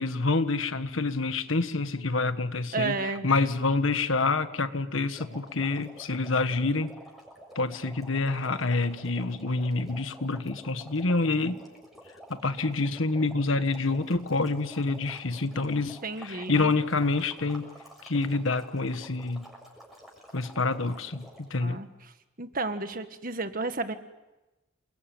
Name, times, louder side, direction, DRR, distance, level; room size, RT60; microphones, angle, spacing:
voice 1, 0.0-6.9 7.5-11.6 12.3-17.7 18.0-19.5 20.3-21.8, left 3 dB, 85° left, 10 dB, 1.5 m, -27 dB
voice 2, 2.7-3.3 16.0-16.7 21.6-21.9 22.4-23.9, right 3 dB, 45° right, 9 dB, 1.7 m, -32 dB
sound 1, 5.1-21.6, equal, ahead, 6.4 m, -50 dB
28.5 x 22.5 x 9.2 m, 1.1 s
head